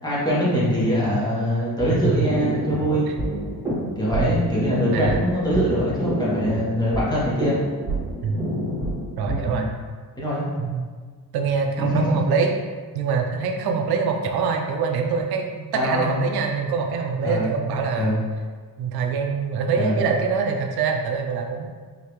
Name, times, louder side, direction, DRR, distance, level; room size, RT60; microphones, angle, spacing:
voice 1, 0.0-3.0 4.0-7.6 9.4-9.7 10.2-10.5 11.8-12.0 15.7-16.2 17.2-17.5 18.0-18.2 19.8-20.0, equal, 10° left, -8 dB, 1.2 m, -23 dB
sound 1, 1.8-9.4, right 1 dB, 15° right, 1.4 m, -28 dB
voice 2, 9.2-9.7 10.6-10.9 11.3-12.5 12.9-18.2 18.8-21.7, right 5 dB, 80° right, 3 dB, 0.6 m, -24 dB
5.1 x 2.8 x 3.0 m, 1.5 s
cardioid pair, 145°, 37 cm